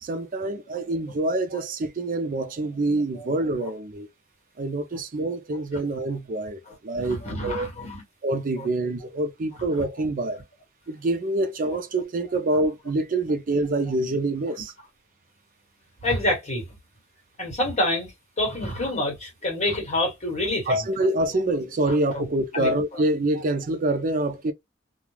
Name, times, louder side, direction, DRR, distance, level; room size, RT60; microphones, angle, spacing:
voice 1, 0.0-4.1 4.6-7.7 8.2-10.4 10.9-14.7 20.7-24.5, right 2 dB, 45° right, 0.5 m, -26 dB
voice 2, 6.7-8.0 8.6-8.7 9.6-9.9 16.0-16.6 17.4-18.1 18.4-21.1 21.9-22.2 22.5-23.0, left 1 dB, 35° left, 1.3 m, -28 dB
2.3 x 2.3 x 3.2 m
head